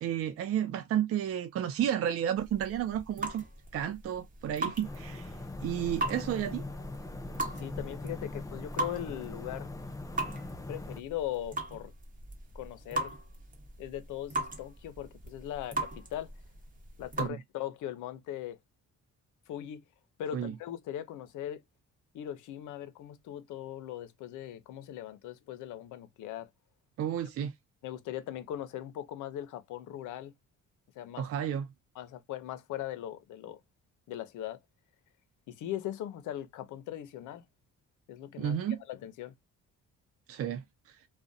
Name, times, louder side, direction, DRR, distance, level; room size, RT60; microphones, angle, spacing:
voice 1, 0.0-3.4 3.7-5.3 5.6-6.6 17.2-17.4 20.3-20.5 27.0-27.5 31.2-31.7 38.4-38.8 40.3-40.6, right 10 dB, 50° right, 0.4 m, -31 dB
sound 1, 2.4-17.3, right 2 dB, 25° right, 0.9 m, -39 dB
sound 2, 4.8-11.0, left 2 dB, 10° left, 0.4 m, -41 dB
voice 2, 7.6-9.7 10.7-11.9 12.5-13.1 13.8-16.3 17.0-18.6 19.5-19.8 20.2-21.6 22.1-26.5 27.8-30.3 31.0-31.3 32.0-33.6 34.1-34.6 35.5-37.4 38.1-38.6 38.9-39.3, left 12 dB, 80° left, 0.5 m, -39 dB
2.4 x 2.1 x 2.5 m
cardioid pair, 90°, 30 cm